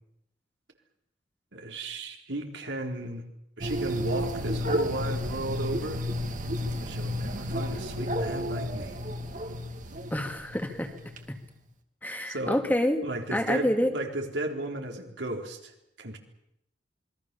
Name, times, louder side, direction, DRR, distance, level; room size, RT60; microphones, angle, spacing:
voice 1, 1.5-3.2 3.6-6.1 6.8-9.0 12.3-12.6 13.0-16.2, right 1 dB, 80° right, 2 dB, 4.1 m, -34 dB
sound 1, 3.6-11.2, equal, 45° right, 2.4 m, -32 dB
voice 2, 10.1-10.9 11.3-11.4 12.0-13.0 13.3-13.9, left 1 dB, 10° left, 5 dB, 2.3 m, -27 dB
27.0 x 22.5 x 7.0 m, 0.80 s
head